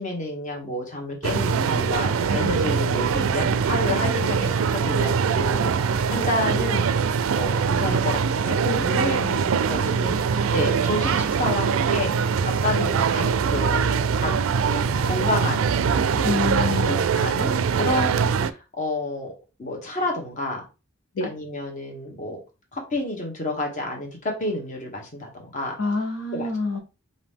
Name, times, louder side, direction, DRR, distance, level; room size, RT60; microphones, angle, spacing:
voice 1, 0.0-6.8 7.3-9.2 9.7-10.1 10.5-12.3 12.6-14.3 14.6-15.6 16.2-17.5 17.8-19.3 19.6-20.6 21.2-22.4 22.7-25.7 26.3-26.5, left 1 dB, 40° left, 1.2 m, -29 dB
sound 1, 1.2-18.5, right 6 dB, 90° right, 0.4 m, -23 dB
voice 2, 9.0-9.5 16.2-17.0 21.2-21.3 25.8-26.8, left 3 dB, 85° left, 1.0 m, -27 dB
4.9 x 2.7 x 3.5 m
head